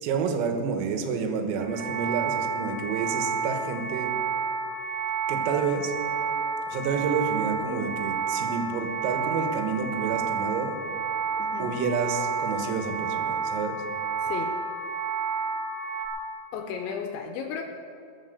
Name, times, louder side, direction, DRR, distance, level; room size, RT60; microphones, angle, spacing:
voice 1, 0.0-4.1 5.3-5.9 6.7-10.8 11.6-13.8, right 5 dB, 85° right, 5 dB, 4.0 m, -29 dB
sound 1, 1.6-16.1, right 5 dB, 45° right, 2.8 m, -30 dB
voice 2, 11.4-11.7 14.2-14.5 16.5-17.6, left 7 dB, 80° left, 4 dB, 2.9 m, -34 dB
20.5 x 7.5 x 6.7 m, 2.6 s
omnidirectional pair, 6.0 m